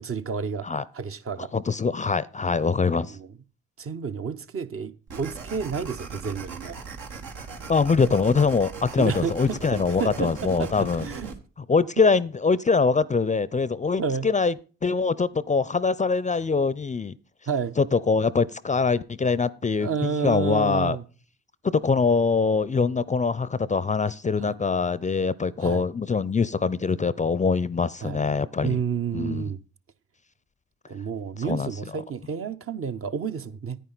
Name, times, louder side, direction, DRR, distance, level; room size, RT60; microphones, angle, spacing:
voice 1, 0.0-0.7 0.9-1.5 3.0-3.3 3.8-6.8 9.0-11.3 14.0-14.3 17.5-17.8 19.8-21.0 24.4-24.5 25.6-25.8 28.0-28.2 28.6-29.6 30.9-33.8, right 6 dB, 45° right, 0.8 m, -30 dB
voice 2, 1.4-3.2 7.7-11.1 11.7-14.5 14.8-17.1 17.8-21.0 21.6-28.8 29.1-29.4 31.4-31.7, left 4 dB, 25° left, 0.5 m, -23 dB
sound 1, 5.1-11.3, right 4 dB, 75° right, 1.4 m, -39 dB
10.0 x 9.2 x 3.9 m
hypercardioid pair, 45°, 32 cm